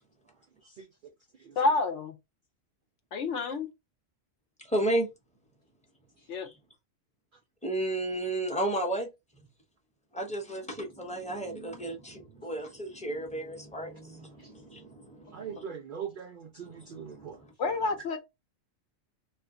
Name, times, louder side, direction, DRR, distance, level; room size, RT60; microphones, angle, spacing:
voice 1, 0.6-1.1 1.4-1.6 6.2-6.3 14.4-14.5 15.3-17.4, right 7 dB, 70° right, 0.4 m, -42 dB
voice 2, 1.6-2.1 3.1-3.7 6.3-6.5 17.6-18.2, left 3 dB, 65° left, 0.9 m, -28 dB
voice 3, 4.6-5.1 7.6-9.1 10.1-15.6 16.6-17.5, right 1 dB, 5° left, 0.7 m, -33 dB
2.6 x 2.4 x 3.6 m
omnidirectional pair, 1.4 m